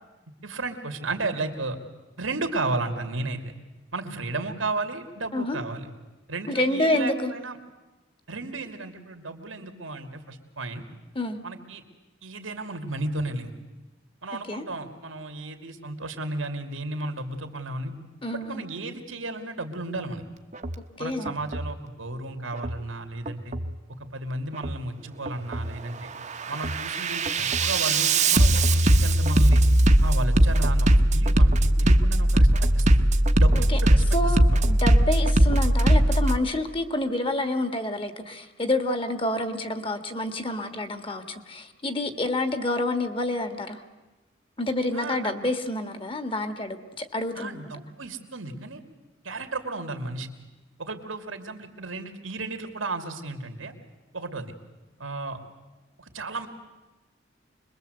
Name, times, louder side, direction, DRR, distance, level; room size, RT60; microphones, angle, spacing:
voice 1, 0.4-1.8 2.2-3.5 3.9-5.9 6.3-7.6 8.3-10.8 11.4-11.8 12.2-13.5 14.2-17.9 18.5-20.2 21.0-23.6 24.0-26.1 26.5-29.6 30.0-33.1 33.4-34.6 44.9-45.4 47.3-48.8 49.2-50.3 50.8-53.7 54.1-54.5 55.0-55.4 56.0-56.5, right 2 dB, 90° right, 6 dB, 2.5 m, -33 dB
voice 2, 6.5-7.3 11.1-11.4 14.5-14.6 18.2-18.7 21.0-21.4 33.7-33.8 34.1-43.8 44.6-47.7, left 1 dB, 25° left, 9 dB, 1.6 m, -28 dB
Bass drum, 20.5-20.8 21.3-21.7 22.5-22.8 23.3-23.7 24.5-24.8 25.3-25.8 26.2-36.4, right 1 dB, 35° right, 1.0 m, -20 dB
25.5 x 21.5 x 8.0 m, 1.1 s
head